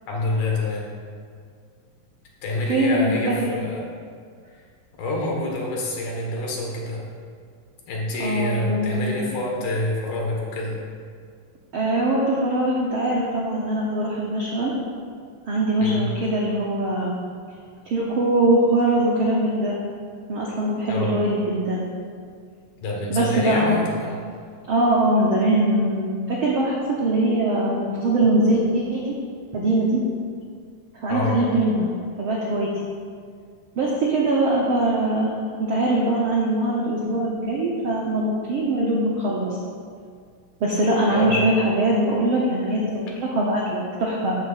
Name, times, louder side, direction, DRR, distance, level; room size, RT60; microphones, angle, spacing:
voice 1, 0.1-0.9 2.4-3.8 5.0-7.0 7.9-10.8 15.8-16.1 20.9-21.1 22.8-24.2 31.1-31.5 41.1-41.4, left 1 dB, 80° left, -2 dB, 3.3 m, -27 dB
voice 2, 8.2-9.2 11.7-14.7 15.5-17.1 17.8-19.8 20.3-21.8 23.1-23.8 24.7-29.1 29.5-30.0 31.0-31.9 32.2-32.7 33.8-35.3 35.6-39.5 40.6-44.4, right 1 dB, 80° right, -4 dB, 1.1 m, -22 dB
10.5 x 3.8 x 7.3 m, 2.1 s
omnidirectional pair, 3.9 m